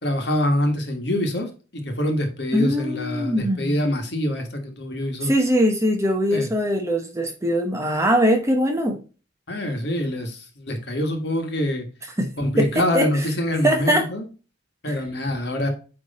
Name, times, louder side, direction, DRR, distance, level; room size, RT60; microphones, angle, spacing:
voice 1, 0.0-5.3 6.3-6.5 9.5-11.9 12.4-14.3 14.8-15.7, left 1 dB, 55° left, 4 dB, 1.6 m, -25 dB
voice 2, 2.5-3.8 5.2-9.0 12.2-12.3 12.6-13.2 13.6-14.1 14.9-15.0, equal, 15° right, 3 dB, 1.0 m, -21 dB
8.8 x 3.4 x 4.2 m, 0.34 s
head